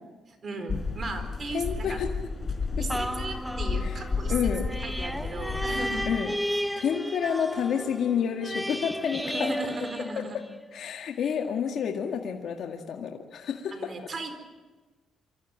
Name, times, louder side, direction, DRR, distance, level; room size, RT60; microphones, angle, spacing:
voice 1, 0.3-2.0 2.8-4.3 4.8-6.1 9.2-10.4 13.7-14.3, right 2 dB, 40° right, 7 dB, 4.4 m, -36 dB
sound 1, 0.7-6.2, left 4 dB, 35° left, 4.7 m, -32 dB
voice 2, 1.5-2.1 3.8-4.0 4.3-4.7 6.1-6.4 6.8-9.5 10.2-10.3 10.7-14.1, left 7 dB, 70° left, 2 dB, 2.0 m, -29 dB
sound 2, 2.9-10.7 11.3-11.4, equal, ahead, 1.0 m, -34 dB
25.5 x 14.5 x 9.2 m, 1.2 s
cardioid pair, 90°, 0 cm